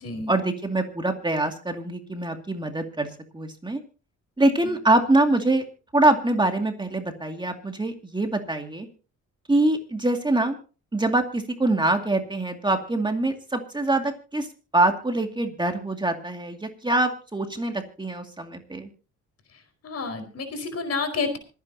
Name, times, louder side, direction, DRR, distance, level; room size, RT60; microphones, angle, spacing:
voice 1, 0.3-3.8 4.4-5.6 5.9-8.9 9.5-10.6 10.9-14.5 14.7-18.9, right 2 dB, 15° right, 4 dB, 2.4 m, -24 dB
voice 2, 19.8-21.4, left 4 dB, 55° left, 7 dB, 4.8 m, -29 dB
26.5 x 9.5 x 2.8 m, 0.35 s
cardioid pair, 90°, 30 cm